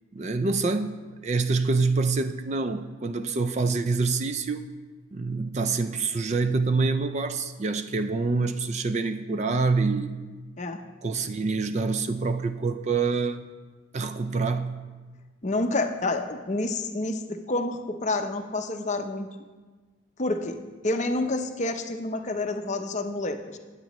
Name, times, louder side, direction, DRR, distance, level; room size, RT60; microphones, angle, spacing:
voice 1, 0.1-4.6 5.1-10.1 11.0-13.5 13.9-14.8, right 4 dB, 35° right, 9 dB, 0.3 m, -26 dB
voice 2, 15.4-19.3 20.2-20.5 20.8-23.6, left 2 dB, 35° left, 6 dB, 0.6 m, -28 dB
19.5 x 8.3 x 3.0 m, 1.4 s
head